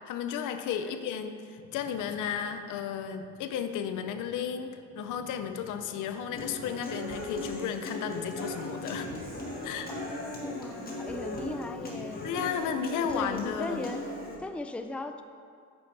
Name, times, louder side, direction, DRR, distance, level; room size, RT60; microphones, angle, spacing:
voice 1, 0.1-4.7 5.0-9.1 9.6-9.9 12.2-13.9, left 8 dB, 85° left, 8 dB, 0.6 m, -33 dB
sound 1, 1.6-12.6, left 5 dB, 55° left, 0.8 m, -51 dB
Human voice / Acoustic guitar, 6.3-14.4, left 1 dB, 30° left, 1.8 m, -38 dB
voice 2, 9.9-12.2 12.6-14.0 14.4-15.2, left 2 dB, 5° left, 7 dB, 0.4 m, -38 dB
8.7 x 7.0 x 3.3 m, 2.3 s
cardioid pair, 90°, 30 cm